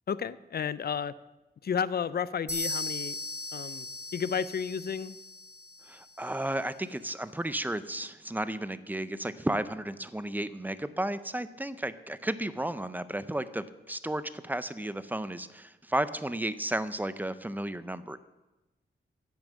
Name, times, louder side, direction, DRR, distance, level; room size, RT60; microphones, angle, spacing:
voice 1, 0.1-1.1 1.6-3.2 3.5-3.9 4.1-5.2, left 7 dB, 60° left, 17 dB, 0.5 m, -32 dB
sound 1, 2.5-6.2, left 2 dB, 15° left, 3.5 m, -38 dB
voice 2, 5.9-18.2, right 1 dB, 10° right, 14 dB, 0.5 m, -33 dB
10.5 x 9.3 x 7.4 m, 1.1 s
wide cardioid pair, 115°, 18 cm